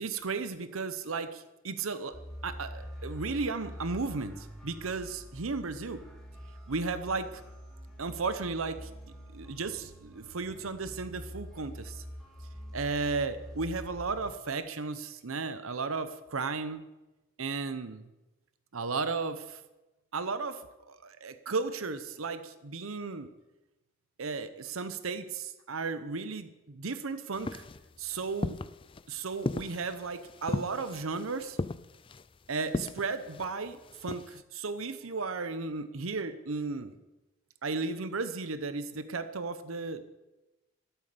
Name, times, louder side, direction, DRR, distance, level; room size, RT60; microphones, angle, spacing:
voice 1, 0.0-6.0 6.7-7.4 8.0-8.9 9.3-12.0 12.7-16.8 17.4-18.1 18.7-19.6 20.1-20.6 20.9-23.3 24.2-27.6 28.0-28.6 29.1-31.6 32.5-36.9 37.6-40.0, right 4 dB, 80° right, 11 dB, 0.9 m, -34 dB
sound 1, 2.1-14.3, equal, 5° left, 3.3 m, -45 dB
sound 2, 27.3-34.4, left 2 dB, 25° left, 0.4 m, -38 dB
13.0 x 12.0 x 6.8 m, 1.0 s
head